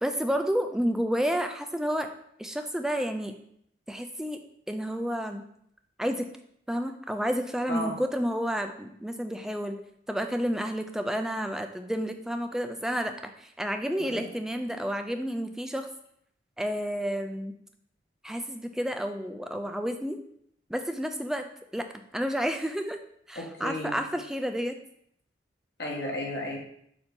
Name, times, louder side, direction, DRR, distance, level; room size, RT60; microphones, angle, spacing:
voice 1, 0.0-2.1 2.4-3.3 3.9-4.4 4.7-5.4 6.0-6.2 6.7-9.8 10.1-15.9 16.6-17.5 18.2-20.2 20.7-21.5 21.7-21.8 22.1-23.0 23.3-24.8, equal, 5° right, 6 dB, 0.4 m, -30 dB
voice 2, 23.3-24.0 25.8-26.6, left 1 dB, 60° left, -2 dB, 1.4 m, -34 dB
7.0 x 2.7 x 5.2 m, 0.70 s
head